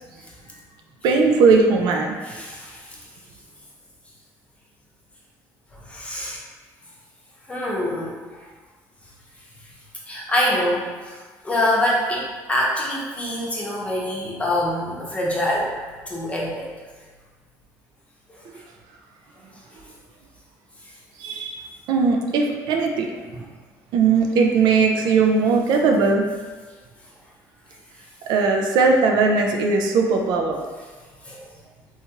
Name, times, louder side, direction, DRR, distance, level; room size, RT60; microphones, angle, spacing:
voice 1, 1.0-2.2 21.2-23.4 23.9-26.2 28.3-30.6, right 4 dB, 75° right, 2 dB, 0.4 m, -19 dB
voice 2, 2.2-3.0 5.7-6.4 7.5-8.5 9.6-9.7 10.1-15.7 16.1-16.7 18.3-18.4 20.8-20.9 23.3-23.4 31.2-31.5, left 1 dB, 15° left, -5 dB, 0.8 m, -25 dB
2.9 x 2.3 x 2.9 m, 1.4 s
supercardioid pair, 90°, 7 cm